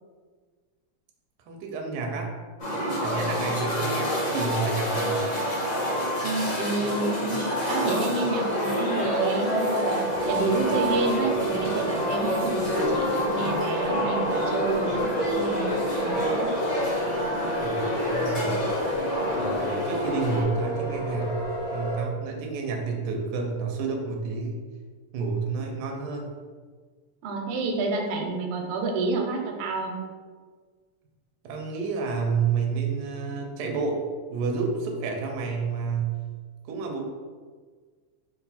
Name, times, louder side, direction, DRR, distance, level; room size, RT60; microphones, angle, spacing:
voice 1, 1.5-2.3 2.7-5.2 17.6-18.6 19.3-21.4 21.7-24.6 25.1-26.3 31.4-34.0 34.3-36.2 36.6-37.0, right 4 dB, 75° right, 2 dB, 1.0 m, -30 dB
sound 1, 2.6-20.4, equal, 55° left, 0.4 m, -28 dB
voice 2, 6.2-7.4 7.7-10.0 10.3-15.8 16.0-16.5 27.2-29.9, right 3 dB, 90° right, 2 dB, 1.5 m, -29 dB
sound 2, 10.1-22.0, equal, 90° left, 1.8 m, -31 dB
3.9 x 2.4 x 4.0 m, 1.5 s
omnidirectional pair, 2.4 m